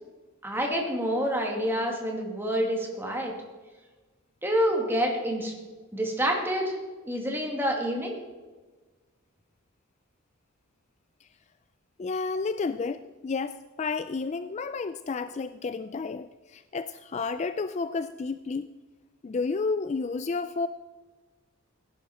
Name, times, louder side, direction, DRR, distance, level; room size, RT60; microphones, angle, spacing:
voice 1, 0.4-3.3 4.4-5.5 5.9-6.8 7.0-8.2, equal, 10° right, 1 dB, 2.3 m, -27 dB
voice 2, 12.0-18.7 19.2-20.7, left 4 dB, 30° left, 12 dB, 0.3 m, -31 dB
16.5 x 11.0 x 4.2 m, 1.3 s
head